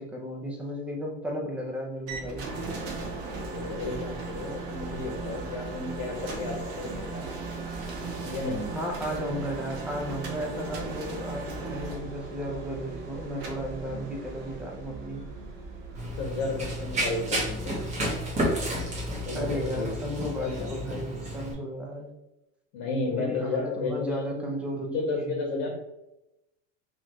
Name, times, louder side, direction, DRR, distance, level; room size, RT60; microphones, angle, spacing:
voice 1, 0.0-2.5 8.8-15.2 19.3-22.1 23.1-24.9 25.1-25.4, equal, 5° right, 0 dB, 0.4 m, -34 dB
sound 1, 2.1-19.9, right 3 dB, 50° right, 1.0 m, -38 dB
voice 2, 3.5-7.3 8.2-8.7 13.9-14.0 16.1-17.8 19.1-20.7 22.7-24.5 24.8-25.7, left 3 dB, 80° left, 1 dB, 1.0 m, -33 dB
Run, 15.9-21.5, equal, 20° right, 1.0 m, -31 dB
3.8 x 2.9 x 3.0 m, 0.91 s
cardioid pair, 160°, 32 cm